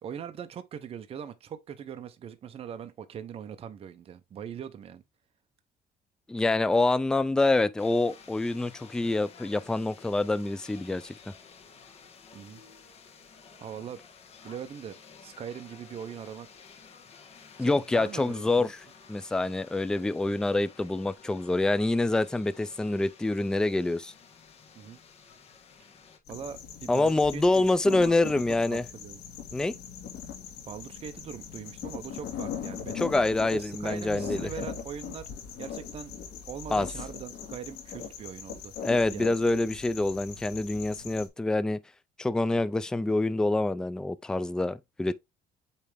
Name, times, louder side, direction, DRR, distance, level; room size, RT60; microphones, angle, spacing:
voice 1, 0.0-5.0 12.3-12.6 13.6-14.0 14.4-16.5 17.6-18.7 24.7-25.0 25.8-25.9 26.3-28.2 28.7-29.2 30.7-32.9 33.4-35.3 35.6-36.1 36.4-38.7 39.1-39.4, right 8 dB, 40° right, 0.8 m, -41 dB
voice 2, 6.3-11.1 17.6-18.8 19.1-24.1 26.9-28.8 29.5-29.7 33.0-34.5 36.7-36.9 38.8-41.8 42.2-45.2, left 2 dB, 5° left, 0.3 m, -26 dB
sound 1, 7.8-26.2, left 6 dB, 40° left, 1.5 m, -53 dB
sound 2, 26.2-41.3, left 7 dB, 75° left, 2.3 m, -40 dB
8.4 x 3.3 x 3.4 m
cardioid pair, 140°, 16 cm